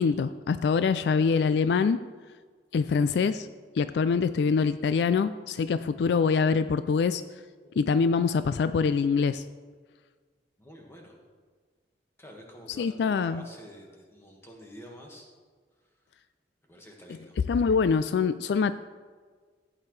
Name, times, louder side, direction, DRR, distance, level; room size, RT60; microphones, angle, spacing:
voice 1, 0.0-2.0 2.7-3.5 3.8-7.2 7.8-9.4 12.8-13.4 17.5-18.7, left 5 dB, 70° left, 13 dB, 0.3 m, -24 dB
voice 2, 0.9-1.4 7.6-7.8 10.6-11.2 12.2-15.3 15.8-15.9 16.7-17.4, equal, 15° left, -1 dB, 1.7 m, -48 dB
15.5 x 8.7 x 3.2 m, 1.5 s
head